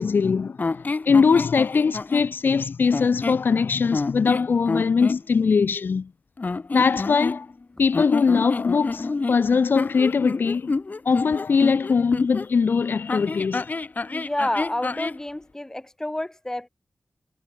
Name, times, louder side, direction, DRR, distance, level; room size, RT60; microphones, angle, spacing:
voice 1, 0.0-6.1 6.7-7.5 7.8-10.7 11.1-13.7, left 5 dB, 70° left, 0.6 m, -21 dB
sound 1, 0.6-2.3 2.9-3.5 3.9-5.2 6.4-7.6 7.9-12.5 13.1-15.2, left 3 dB, 50° left, 1.8 m, -28 dB
voice 2, 14.1-16.7, left 1 dB, 15° left, 0.7 m, -29 dB
cardioid pair, 45°, 4 cm